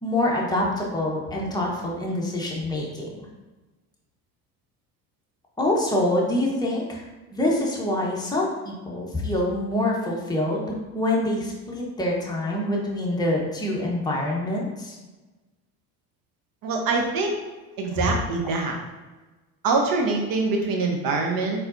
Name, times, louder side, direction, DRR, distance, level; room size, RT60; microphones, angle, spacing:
voice 1, 0.0-3.1 5.6-7.0 7.3-14.9 17.9-18.0, left 1 dB, 10° left, -3 dB, 1.2 m, -25 dB
voice 2, 16.6-17.4 17.8-18.8 19.6-21.7, right 3 dB, 50° right, 1 dB, 1.2 m, -24 dB
4.3 x 3.9 x 2.7 m, 1.2 s
hypercardioid pair, 80°, 43 cm